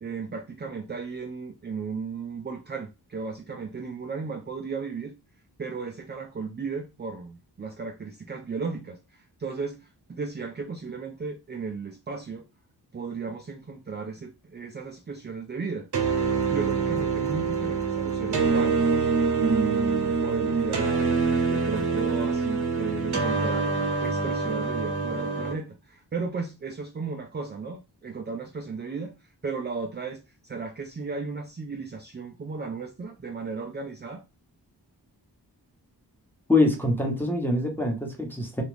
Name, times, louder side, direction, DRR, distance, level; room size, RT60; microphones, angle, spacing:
voice 1, 0.0-5.2 5.6-12.5 12.9-15.9 16.5-18.8 19.3-21.1 21.4-23.7 24.0-34.2, right 5 dB, 25° right, 0.4 m, -35 dB
sound 1, 15.9-25.5, right 4 dB, 75° right, 0.9 m, -25 dB
voice 2, 36.5-38.6, left 2 dB, 5° left, 1.0 m, -24 dB
2.9 x 2.4 x 3.3 m
cardioid pair, 50°, 40 cm